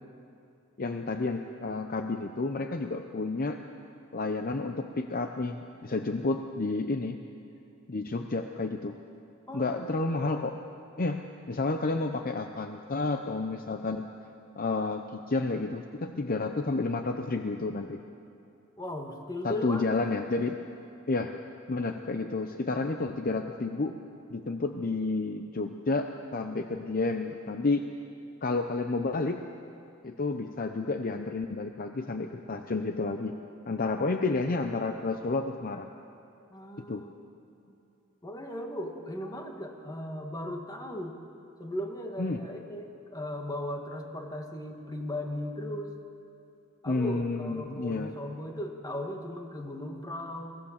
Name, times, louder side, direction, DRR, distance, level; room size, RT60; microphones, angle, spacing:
voice 1, 0.8-3.6 4.1-7.2 7.9-9.0 9.5-10.5 11.0-14.1 14.6-18.0 19.4-20.6 21.1-21.3 21.7-23.9 24.3-27.8 28.4-29.4 30.0-33.4 33.7-35.9 36.9-37.0 42.2-42.4 46.9-48.1, left 3 dB, 45° left, 6 dB, 0.7 m, -30 dB
voice 2, 9.5-9.9 18.8-19.8 34.0-34.2 36.5-37.1 37.7-37.8 38.2-41.1 41.6-45.9 46.8-50.6, left 1 dB, 20° left, 2 dB, 1.8 m, -37 dB
23.0 x 16.5 x 7.3 m, 2.7 s
head